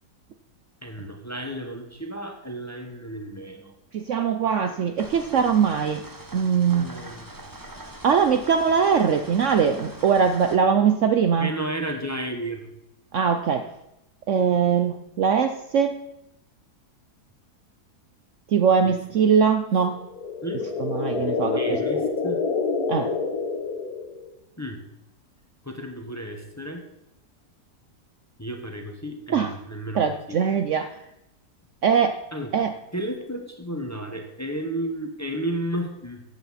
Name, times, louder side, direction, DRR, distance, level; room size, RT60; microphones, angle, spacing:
voice 1, 0.8-3.7 6.7-7.3 8.9-9.0 11.4-12.7 18.8-18.9 20.4-20.7 21.6-22.4 24.6-24.8 25.6-26.9 28.4-30.0 30.3-30.4 32.3-32.5 32.9-36.2, right 1 dB, 10° left, 4 dB, 1.0 m, -32 dB
voice 2, 3.9-6.0 6.3-6.9 8.0-11.5 13.1-13.7 14.3-16.0 18.5-20.0 20.8-21.8 22.9-23.1 29.3-29.5 29.9-31.0 31.8-32.2 32.5-32.7, right 7 dB, 60° right, 7 dB, 0.8 m, -21 dB
sound 1, 5.0-10.6, right 1 dB, 15° right, 0.9 m, -42 dB
sound 2, 19.9-24.3, left 4 dB, 65° left, 1.6 m, -27 dB
14.5 x 8.1 x 4.2 m, 0.89 s
omnidirectional pair, 1.7 m